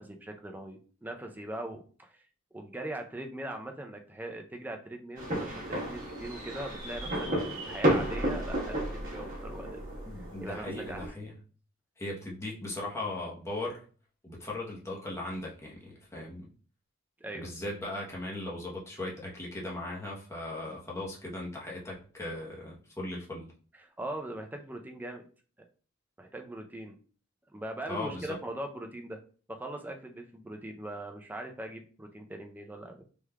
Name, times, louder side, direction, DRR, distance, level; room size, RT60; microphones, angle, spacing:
voice 1, 0.0-2.2 2.5-9.8 10.2-11.1 17.2-17.5 23.8-25.2 26.2-27.0 27.5-29.2 29.5-33.0, right 1 dB, 10° right, 4 dB, 0.4 m, -41 dB
sound 1, 5.2-11.1, right 1 dB, 40° right, 1.1 m, -32 dB
voice 2, 10.1-11.4 12.0-13.8 14.2-16.5 17.3-23.5 27.9-28.4, left 2 dB, 15° left, -4 dB, 0.8 m, -38 dB
3.4 x 3.1 x 2.2 m, 0.40 s
head